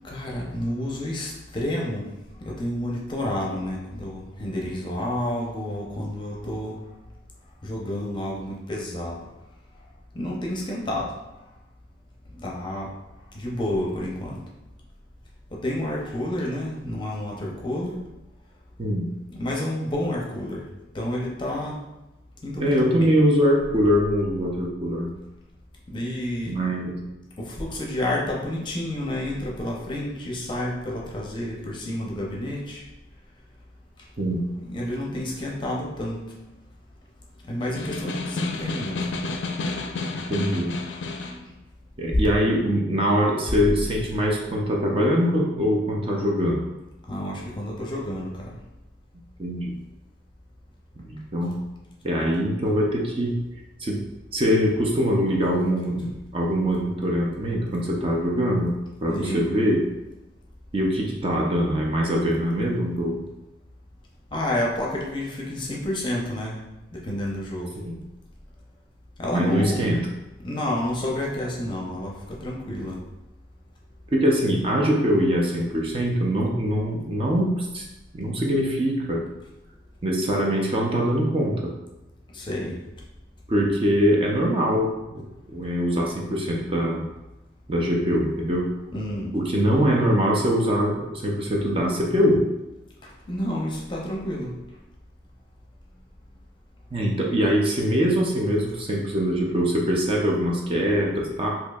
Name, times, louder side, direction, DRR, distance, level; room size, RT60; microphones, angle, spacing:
voice 1, 0.0-2.1 2.4-6.8 7.6-9.3 10.1-11.1 12.4-12.9 13.3-14.4 15.5-18.0 19.3-20.6 20.9-21.8 22.4-23.1 25.9-26.6 27.4-32.8 34.5-36.2 37.5-39.0 47.1-48.5 56.0-56.1 59.0-59.5 64.3-66.6 66.9-67.7 69.2-69.8 70.4-73.0 82.3-82.8 88.9-89.3 93.0-94.5, left 1 dB, 25° left, -3 dB, 0.6 m, -30 dB
voice 2, 22.6-25.1 26.5-26.9 34.2-34.4 40.1-40.7 42.0-46.6 49.4-49.8 51.0-51.5 52.0-53.4 53.8-54.0 54.3-58.7 59.0-59.8 60.7-63.2 67.8-68.0 69.3-70.0 74.1-77.8 78.1-79.2 80.0-81.7 83.5-84.9 85.1-85.3 85.5-87.1 87.7-88.7 89.3-92.4 96.9-101.5, equal, 30° right, -2 dB, 0.5 m, -23 dB
Snare drum, 37.6-41.5, left 3 dB, 80° left, 0.4 m, -30 dB
4.3 x 2.7 x 2.3 m, 1.0 s
head